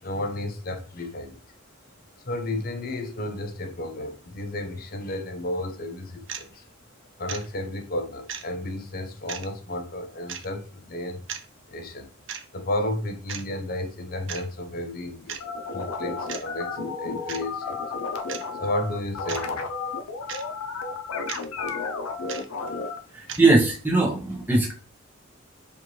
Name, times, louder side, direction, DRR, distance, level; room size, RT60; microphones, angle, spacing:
voice 1, 0.0-1.4 2.2-6.6 7.2-11.2 11.7-12.1 12.5-15.4 15.7-17.8 18.6-19.6 23.3-23.4, left 1 dB, 40° left, 0.6 m, -32 dB
sound 1, 6.3-6.5 7.3-7.5 8.3-8.4 9.3-9.5 10.3-10.5 11.3-11.5 12.3-12.5 13.3-13.4 14.3-14.5 15.3-15.4 16.3-16.4 17.3-17.4 18.3-18.5 19.3-19.5 20.3-20.4 21.3-21.5 22.3-22.5 23.3-23.4, right 8 dB, 60° right, 0.5 m, -35 dB
sound 2, 15.4-23.0, left 4 dB, 85° left, 0.5 m, -32 dB
voice 2, 23.1-24.7, right 2 dB, 10° right, 0.8 m, -20 dB
4.2 x 2.5 x 3.0 m
head